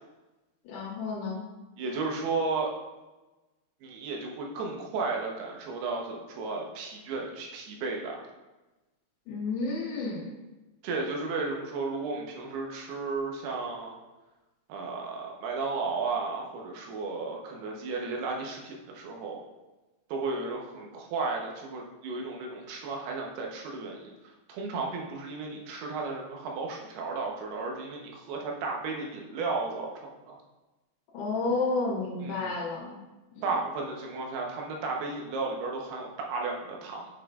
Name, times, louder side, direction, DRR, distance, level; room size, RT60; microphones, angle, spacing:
voice 1, 0.6-1.4 9.3-10.3 31.1-33.0 33.3-33.6, left 3 dB, 85° left, -5 dB, 3.4 m, -31 dB
voice 2, 1.8-2.7 3.8-8.2 10.8-13.9 14.7-19.4 20.1-24.1 24.5-30.4 32.2-32.6 33.4-37.1, right 3 dB, 80° right, 0 dB, 3.0 m, -34 dB
8.3 x 6.3 x 2.4 m, 1.1 s
omnidirectional pair, 4.6 m